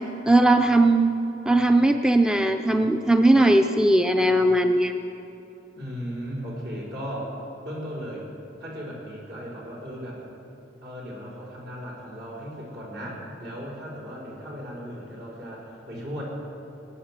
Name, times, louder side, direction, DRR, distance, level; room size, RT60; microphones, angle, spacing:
voice 1, 0.3-1.1 1.5-4.9, right 1 dB, 5° right, 6 dB, 0.4 m, -19 dB
voice 2, 5.7-7.4 7.6-8.3 8.6-10.2 10.8-16.2, equal, 65° right, -4 dB, 4.5 m, -36 dB
18.0 x 9.1 x 7.4 m, 3.0 s
head